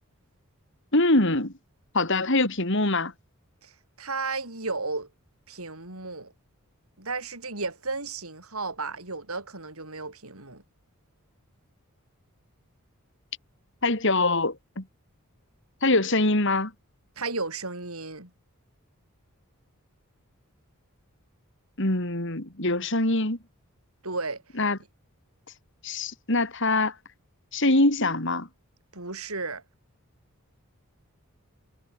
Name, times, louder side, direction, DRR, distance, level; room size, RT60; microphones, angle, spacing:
voice 1, 0.9-1.5 1.9-3.1 13.8-14.8 15.8-16.7 21.8-23.4 24.6-24.8 25.8-26.9 27.5-28.5, left 2 dB, 55° left, 3.7 m, -23 dB
voice 2, 3.6-5.1 5.5-6.3 7.0-10.6 17.2-18.3 24.0-24.4 28.9-29.6, right 3 dB, 75° right, 6.9 m, -34 dB
head